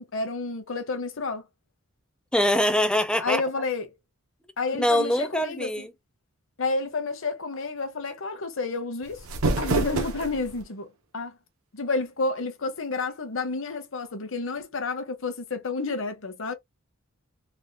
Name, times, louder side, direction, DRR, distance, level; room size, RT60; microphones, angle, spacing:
voice 1, 0.0-1.4 3.2-3.9 4.6-5.7 6.6-9.2 9.6-10.9 11.1-11.4 11.7-16.5, left 3 dB, 65° left, 0.8 m, -30 dB
voice 2, 2.3-3.4 4.8-5.9, left 1 dB, 5° left, 0.3 m, -23 dB
sound 1, 9.0-10.6, right 2 dB, 80° right, 0.7 m, -27 dB
3.4 x 2.2 x 2.6 m
head